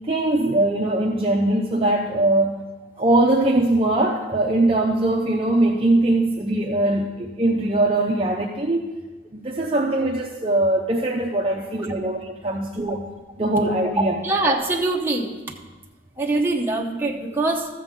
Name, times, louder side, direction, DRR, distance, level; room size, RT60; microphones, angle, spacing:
voice 1, 0.1-2.6 3.0-8.9 9.3-13.0 13.4-14.2, right 1 dB, 30° right, -1 dB, 0.6 m, -21 dB
voice 2, 14.0-15.3 16.2-17.7, right 2 dB, 10° right, -1 dB, 0.9 m, -23 dB
13.5 x 7.7 x 3.7 m, 1.3 s
head